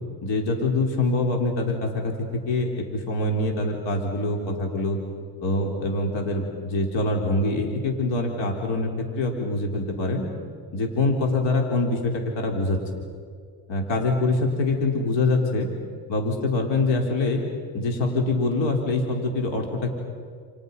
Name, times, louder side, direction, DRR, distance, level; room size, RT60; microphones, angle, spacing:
voice 1, 0.2-2.1 2.5-5.0 5.4-8.9 9.2-10.2 10.7-12.8 13.7-15.7 16.1-17.4 17.7-20.0, left 2 dB, 70° left, 1 dB, 3.9 m, -24 dB
29.5 x 29.5 x 5.5 m, 2.1 s
cardioid pair, 105°, 46 cm